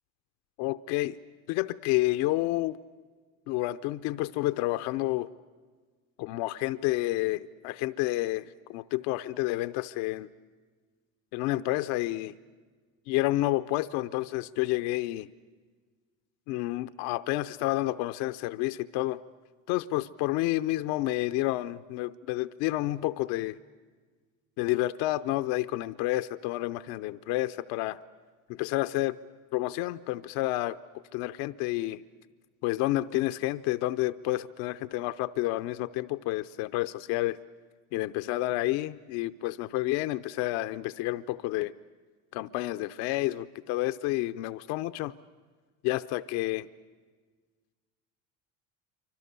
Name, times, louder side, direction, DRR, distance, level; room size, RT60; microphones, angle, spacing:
voice 1, 0.6-1.2 1.5-2.8 3.5-5.3 6.2-10.3 11.3-12.3 13.1-15.3 16.5-19.2 19.7-23.6 24.6-28.0 28.5-29.2 29.5-30.8 31.1-32.0 32.6-37.4 37.9-41.7 42.3-45.1 45.8-46.7, left 17 dB, 65° left, 12 dB, 0.7 m, -30 dB
27.0 x 25.0 x 6.8 m, 1.5 s
supercardioid pair, 100°, 40 cm